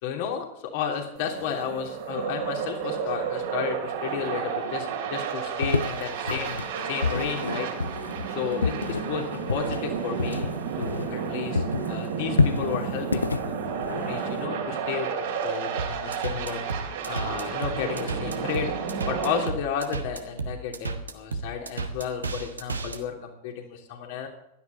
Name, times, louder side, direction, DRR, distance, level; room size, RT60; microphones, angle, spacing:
voice 1, 0.0-6.6 6.9-7.7 8.3-10.5 10.8-16.6 17.1-18.7 19.1-24.3, left 7 dB, 50° left, 2 dB, 3.1 m, -33 dB
sound 1, 1.2-19.5, right 6 dB, 55° right, 3.2 m, -32 dB
sound 2, 5.6-11.3 11.5-14.5, left 4 dB, 75° left, 0.5 m, -28 dB
sound 3, 15.8-23.0, right 3 dB, 75° right, 1.4 m, -33 dB
16.0 x 12.5 x 4.1 m, 0.81 s
figure-of-eight pair, 90°, 0 cm